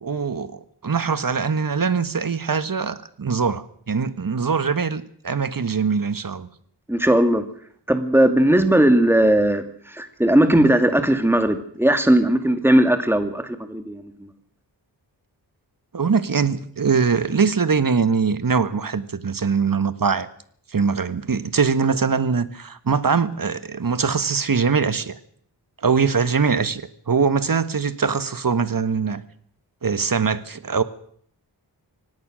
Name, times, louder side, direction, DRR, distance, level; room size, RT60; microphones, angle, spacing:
voice 1, 0.0-6.5 15.9-20.3 20.7-25.2 25.8-29.2 29.8-30.8, right 5 dB, 50° right, 1.6 m, -22 dB
voice 2, 6.9-7.4 7.9-14.1, right 1 dB, 5° right, 2.5 m, -18 dB
24.5 x 18.0 x 6.4 m
wide cardioid pair, 70°, 42 cm